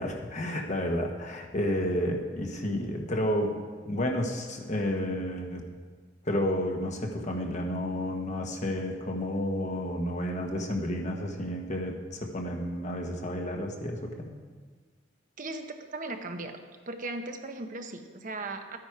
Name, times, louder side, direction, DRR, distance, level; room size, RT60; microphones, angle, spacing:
voice 1, 0.0-3.6 3.8-5.7 6.2-14.4, left 1 dB, 40° left, 2 dB, 1.3 m, -31 dB
voice 2, 15.4-16.5 16.9-18.8, right 2 dB, 45° right, 5 dB, 0.8 m, -37 dB
12.5 x 9.5 x 4.7 m, 1.5 s
head